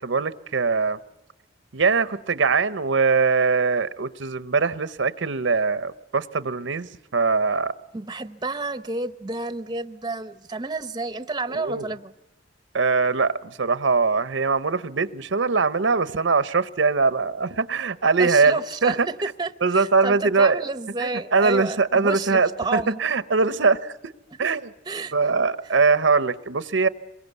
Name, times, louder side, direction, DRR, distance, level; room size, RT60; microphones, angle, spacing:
voice 1, 0.0-1.0 1.7-7.7 11.5-11.9 12.7-19.1 19.6-20.6 21.0-24.1 24.4-24.7 25.1-26.9, right 4 dB, 75° right, 15 dB, 0.8 m, -22 dB
voice 2, 7.9-12.1 18.2-23.0 24.9-25.1 25.6-25.7, right 3 dB, 20° right, 12 dB, 0.8 m, -30 dB
26.5 x 22.5 x 8.2 m, 0.96 s
head